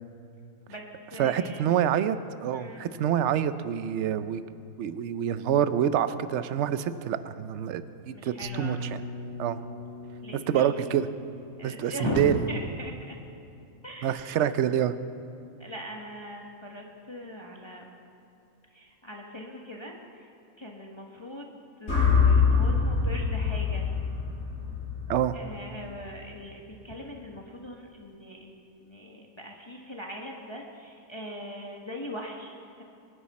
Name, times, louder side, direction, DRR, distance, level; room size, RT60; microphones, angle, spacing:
voice 1, 0.7-1.7 2.5-2.9 8.1-8.8 10.2-10.7 11.6-13.2 13.8-14.3 15.6-18.0 18.7-20.3 20.6-23.9 25.3-32.8, equal, 20° left, 0 dB, 1.2 m, -39 dB
voice 2, 1.2-4.4 4.8-9.0 9.4-9.6 10.5-11.1 11.6-12.3 14.0-15.0 25.1-25.4, right 10 dB, 60° right, 12 dB, 0.8 m, -27 dB
sound 1, 8.4-14.2, left 2 dB, 35° right, 1.6 m, -42 dB
sound 2, 21.9-26.1, left 5 dB, 60° left, 5.0 m, -25 dB
24.5 x 10.5 x 4.2 m, 2.7 s
omnidirectional pair, 1.5 m